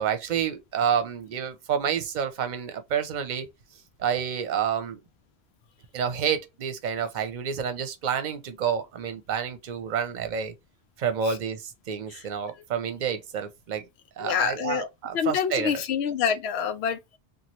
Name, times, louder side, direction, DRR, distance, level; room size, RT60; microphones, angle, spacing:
voice 1, 0.0-3.5 4.0-5.0 5.9-10.5 11.0-13.9 14.2-15.8, right 7 dB, 50° right, 0.7 m, -29 dB
voice 2, 14.2-14.9 15.1-17.2, left 8 dB, 90° left, 0.8 m, -27 dB
3.0 x 2.4 x 2.9 m
omnidirectional pair, 1.1 m